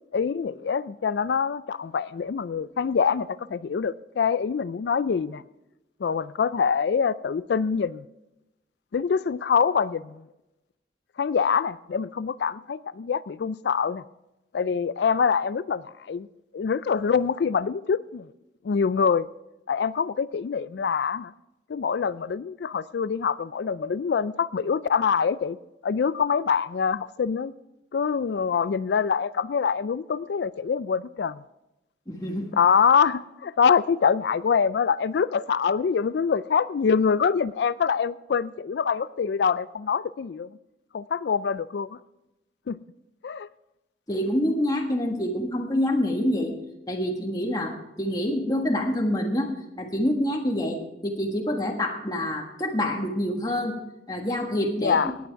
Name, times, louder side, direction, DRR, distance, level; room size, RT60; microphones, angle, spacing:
voice 1, 0.1-5.4 6.0-8.0 8.9-10.2 11.2-14.0 14.5-16.3 16.5-18.3 18.6-19.3 19.7-21.3 21.7-25.6 25.8-27.5 27.9-31.4 32.5-40.5 40.9-42.0 42.7-42.8 43.2-43.5 54.8-55.2, left 6 dB, 65° left, 0.4 m, -25 dB
voice 2, 32.1-32.5 44.1-46.5 46.9-49.5 49.8-53.7 54.1-55.0, left 1 dB, 20° left, 1.4 m, -26 dB
17.5 x 9.5 x 4.6 m
head